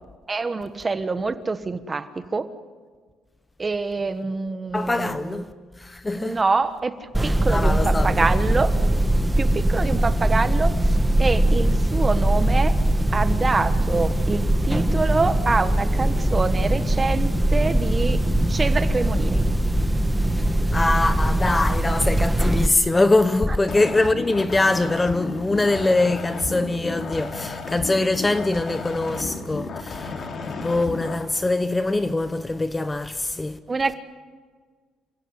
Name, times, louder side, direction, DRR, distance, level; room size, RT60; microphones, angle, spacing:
voice 1, 0.3-2.4 3.6-5.4 6.2-6.9 7.2-8.7 9.4-10.7 11.2-12.7 13.1-18.2 18.5-19.4 33.7-34.0, right 3 dB, 25° right, 1.3 m, -25 dB
voice 2, 4.7-5.5 5.8-6.4 7.5-8.2 20.7-30.1 30.6-33.6, left 2 dB, 15° left, 0.8 m, -23 dB
sound 1, 7.1-22.7, right 1 dB, 5° right, 1.6 m, -21 dB
sound 2, 23.6-31.2, left 4 dB, 45° left, 3.0 m, -33 dB
28.5 x 16.5 x 9.7 m
cardioid pair, 125°, 0 cm